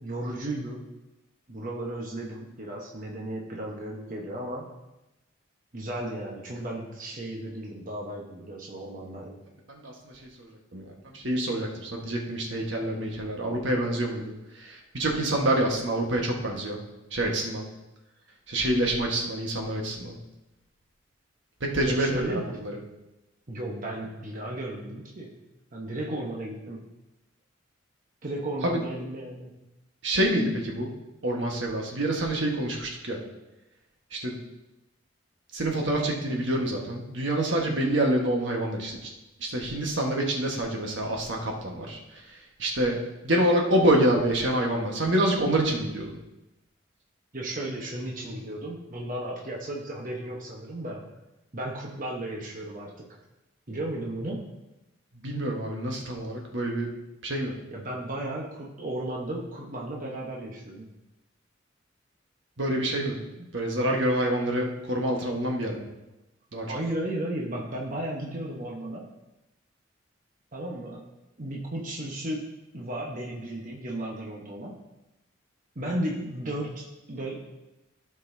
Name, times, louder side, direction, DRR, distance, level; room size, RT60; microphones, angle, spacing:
voice 1, 0.0-0.8 1.5-4.7 5.7-9.4 21.9-22.5 23.5-25.3 25.7-26.8 28.2-29.5 47.3-51.1 51.5-53.2 53.7-54.4 57.7-60.9 63.4-63.5 66.7-69.0 70.5-71.0 71.4-72.4 72.7-74.8 75.7-77.4, right 1 dB, 45° right, -2 dB, 1.1 m, -34 dB
voice 2, 9.7-16.8 17.1-17.7 18.5-20.2 21.6-22.7 28.6-28.8 30.0-30.9 31.2-33.2 34.1-34.4 35.5-39.1 39.4-46.2 55.1-56.9 57.2-57.5 62.6-63.2 63.5-65.9 66.5-66.7, right 1 dB, 70° right, 0 dB, 1.4 m, -27 dB
15.5 x 5.4 x 2.7 m, 0.98 s
head